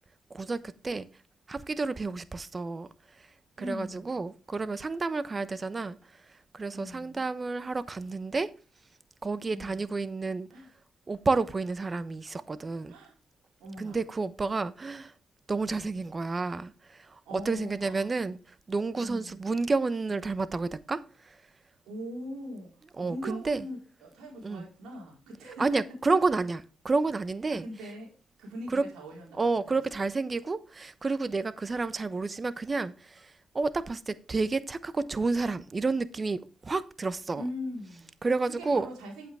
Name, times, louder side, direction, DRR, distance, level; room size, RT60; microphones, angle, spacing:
voice 1, 1.5-2.9 3.7-6.0 6.5-8.5 9.2-10.5 11.1-12.9 13.8-15.1 15.5-16.7 17.3-18.4 18.7-21.0 23.0-23.6 24.4-24.6 25.6-27.6 28.7-28.8 29.4-32.9 33.5-37.4 38.2-38.9, right 3 dB, 35° right, 0.9 m, -30 dB
voice 2, 3.6-4.2 6.7-7.2 9.5-9.9 10.5-10.7 12.9-13.1 13.6-14.0 17.2-18.1 18.9-19.5 21.8-22.7 23.0-25.8 27.5-28.1 28.4-30.0 37.4-38.1 38.5-39.3, equal, 80° right, 4.4 m, -41 dB
8.7 x 8.2 x 3.5 m
supercardioid pair, 50°, 0 cm